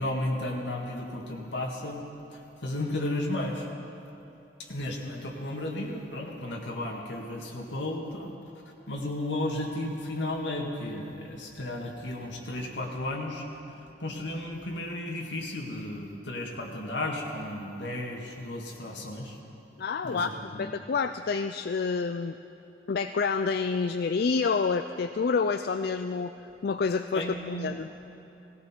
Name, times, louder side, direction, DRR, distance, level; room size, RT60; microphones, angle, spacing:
voice 1, 0.0-2.0 2.3-3.7 4.6-8.3 8.9-13.4 14.0-19.4 20.0-20.7 27.1-27.7, left 1 dB, 85° left, 0 dB, 2.1 m, -34 dB
voice 2, 19.8-22.3 22.9-26.3 26.6-27.9, left 5 dB, 60° left, 9 dB, 0.4 m, -28 dB
18.0 x 16.5 x 4.5 m, 2.9 s
head